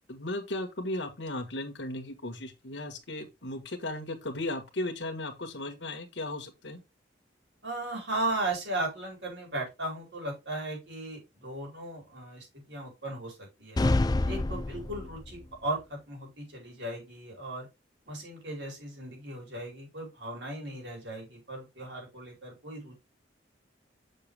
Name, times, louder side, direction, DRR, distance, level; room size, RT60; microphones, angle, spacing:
voice 1, 0.1-6.8, left 1 dB, 80° left, 1.5 m, -36 dB
voice 2, 7.6-13.8 14.2-17.7 18.1-23.0, right 2 dB, 75° right, 4.8 m, -36 dB
sound 1, 13.8-15.4, left 2 dB, 20° left, 0.4 m, -27 dB
6.7 x 6.4 x 3.4 m
head